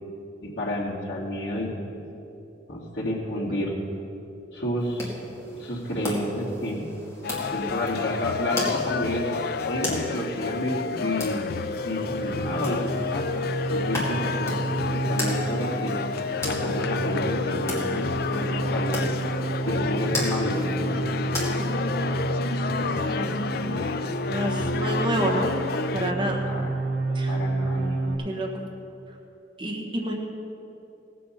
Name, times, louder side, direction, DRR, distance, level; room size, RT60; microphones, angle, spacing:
voice 1, 0.4-1.7 2.7-3.7 4.5-5.1 5.5-6.9 7.5-11.4 11.8-13.2 13.7-14.6 14.9-16.0 16.4-19.1 19.7-21.1 26.2-26.7 27.3-28.0, left 1 dB, 70° left, -6 dB, 2.2 m, -30 dB
sound 1, 4.8-22.2, left 1 dB, 15° left, 2.1 m, -37 dB
sound 2, 7.2-26.1, left 5 dB, 50° left, 0.4 m, -30 dB
sound 3, 11.9-28.2, right 3 dB, 60° right, 1.4 m, -30 dB
voice 2, 23.1-25.5 25.9-26.5 27.1-27.4 28.2-28.7 29.6-30.1, right 1 dB, 25° right, -1 dB, 1.2 m, -30 dB
17.0 x 7.7 x 5.7 m, 2.9 s
head